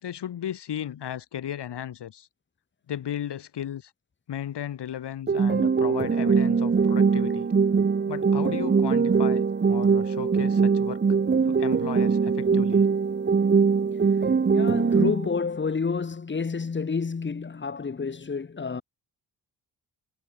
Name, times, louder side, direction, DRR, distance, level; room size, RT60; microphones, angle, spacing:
voice 1, 0.0-2.3 2.9-3.9 4.3-7.5 8.1-11.0 11.4-12.8, left 10 dB, 85° left, 3.0 m, -35 dB
sound 1, 5.3-15.3, right 5 dB, 25° right, 0.8 m, -22 dB
voice 2, 14.5-18.8, left 5 dB, 30° left, 1.0 m, -29 dB
cardioid pair, 55°, 40 cm